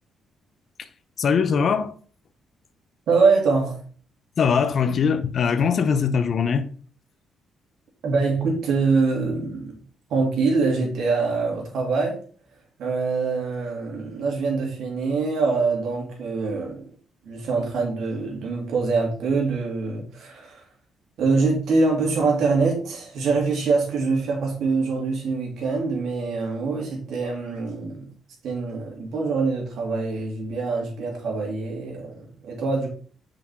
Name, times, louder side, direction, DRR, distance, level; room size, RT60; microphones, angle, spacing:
voice 1, 1.2-1.9 4.4-6.7, left 6 dB, 55° left, 0.6 m, -21 dB
voice 2, 3.1-3.8 8.0-9.8 10.1-12.2 12.8-16.8 17.2-20.6 21.2-28.1 28.4-32.1 32.5-32.9, right 4 dB, 75° right, 2.5 m, -24 dB
5.9 x 5.0 x 3.5 m
cardioid pair, 90°, 0 cm